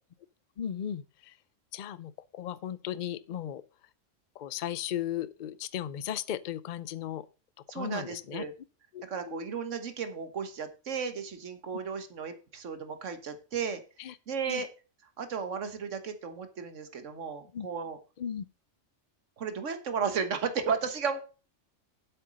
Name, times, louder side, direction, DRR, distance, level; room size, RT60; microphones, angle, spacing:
voice 1, 0.6-1.4 1.7-3.6 4.3-7.3 7.7-8.4 8.9-9.5 14.0-14.2 14.4-14.6 17.5-17.7 18.2-18.4, left 10 dB, 50° left, 0.6 m, -36 dB
voice 2, 7.7-8.5 9.0-13.8 14.3-14.7 15.2-18.0 19.4-21.2, right 6 dB, 75° right, 1.6 m, -34 dB
8.1 x 6.7 x 6.3 m
omnidirectional pair, 1.3 m